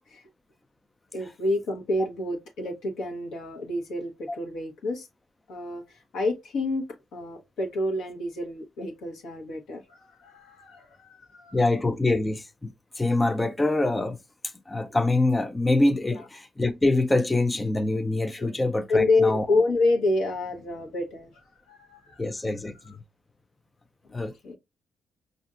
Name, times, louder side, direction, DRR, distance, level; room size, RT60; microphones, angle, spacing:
voice 1, 1.1-5.1 5.5-6.8 7.1-11.6 16.1-16.2 18.4-18.5 18.9-22.2 22.8-22.9 24.4-24.6, left 2 dB, 70° left, 1.0 m, -28 dB
voice 2, 11.5-19.5 22.2-23.0 24.1-24.3, left 2 dB, 20° left, 0.5 m, -25 dB
5.4 x 2.5 x 2.4 m
hypercardioid pair, 45°, 0 cm